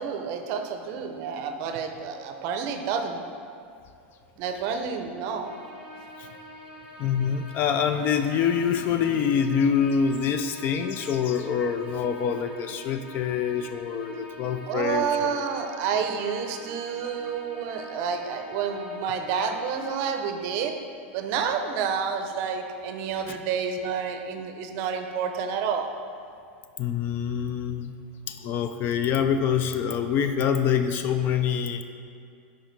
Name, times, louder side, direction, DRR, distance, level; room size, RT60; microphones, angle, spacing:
voice 1, 0.0-3.2 4.4-5.5 14.7-20.7 21.1-25.9, right 6 dB, 50° right, 6 dB, 0.6 m, -29 dB
sound 1, 5.4-20.1, equal, 10° right, 1.4 m, -45 dB
voice 2, 7.0-15.4 23.3-23.4 26.8-27.9 28.3-31.8, left 7 dB, 35° left, 8 dB, 0.3 m, -25 dB
6.2 x 5.0 x 4.0 m, 2.4 s
supercardioid pair, 140°, 6 cm